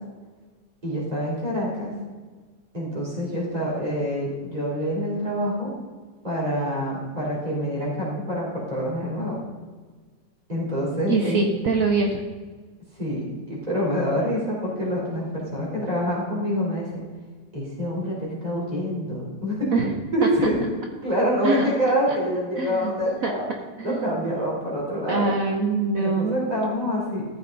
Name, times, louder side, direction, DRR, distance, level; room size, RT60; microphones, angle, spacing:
voice 1, 0.8-1.9 2.7-5.7 6.2-9.4 10.5-11.4 12.9-17.0 17.5-19.7 20.1-20.6 21.0-23.5 23.8-25.3 25.9-27.3, equal, 20° right, -5 dB, 4.1 m, -26 dB
voice 2, 11.1-12.2 19.7-19.9 21.4-21.6 22.1-22.2 22.6-22.9 23.2-23.3 23.8-24.2 25.1-26.4, right 3 dB, 60° right, 3 dB, 1.1 m, -24 dB
14.0 x 7.8 x 3.9 m, 1.4 s
omnidirectional pair, 1.9 m